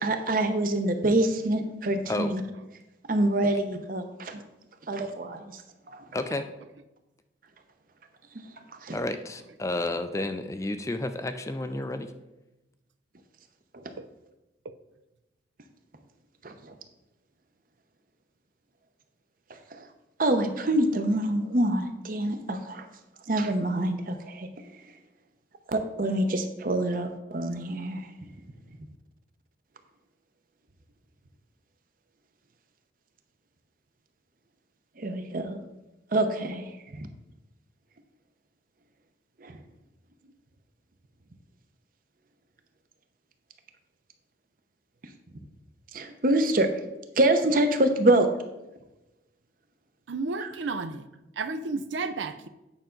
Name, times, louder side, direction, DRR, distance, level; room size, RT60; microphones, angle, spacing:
voice 1, 0.0-2.4 3.1-4.4 4.9-5.6 5.9-6.0 8.3-8.5 8.8-9.0 13.7-13.8 16.4-16.7 19.7-19.9 20.2-22.9 23.3-24.5 25.7-28.1 35.0-35.6 36.1-37.1 39.4-39.6 45.9-46.7 47.2-48.3 50.4-50.5, right 1 dB, 50° right, 7 dB, 0.7 m, -26 dB
voice 2, 6.1-6.5 8.9-12.1, left 2 dB, 15° left, 9 dB, 0.4 m, -31 dB
voice 3, 50.1-51.1 51.4-52.5, right 3 dB, 85° right, 11 dB, 0.5 m, -32 dB
9.1 x 5.7 x 3.8 m, 0.99 s
head